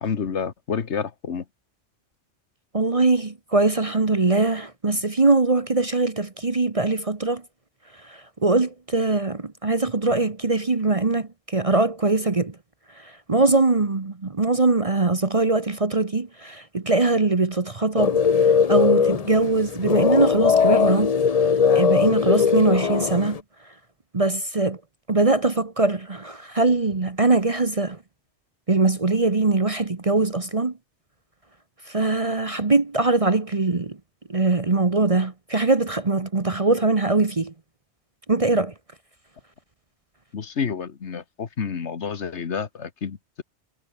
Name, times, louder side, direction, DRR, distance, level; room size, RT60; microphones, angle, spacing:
voice 1, 0.0-1.4 40.3-43.4, left 6 dB, 85° left, 1.7 m, -29 dB
voice 2, 2.7-7.4 8.0-12.6 13.0-18.2 18.7-21.1 21.7-23.4 24.1-24.8 25.1-28.0 28.7-30.7 31.9-34.0 34.3-37.5 38.3-38.7, right 3 dB, 30° right, 1.2 m, -22 dB
sound 1, 18.0-23.4, left 6 dB, 40° left, 0.7 m, -20 dB
omnidirectional pair, 1.1 m